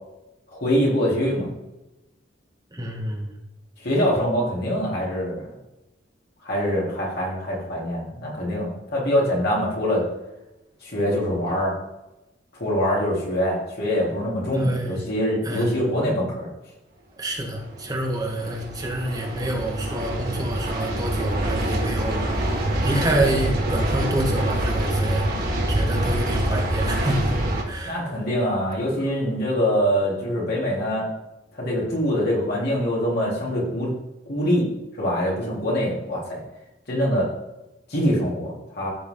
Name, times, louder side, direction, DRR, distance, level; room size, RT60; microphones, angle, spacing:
voice 1, 0.5-1.5 3.8-5.5 6.4-10.0 10.8-11.7 12.5-16.5 27.8-31.1 31.5-33.9 34.3-34.7 35.0-36.4 36.9-37.3 37.9-38.9, equal, 60° left, -4 dB, 3.4 m, -24 dB
voice 2, 2.7-3.3 14.5-15.0 15.4-15.7 17.2-22.4 22.8-25.3 25.7-27.3 27.6-28.0, right 1 dB, 20° right, 0 dB, 1.7 m, -27 dB
sound 1, 17.5-27.6, right 1 dB, 55° right, 1.9 m, -25 dB
14.0 x 4.8 x 3.8 m, 0.97 s
head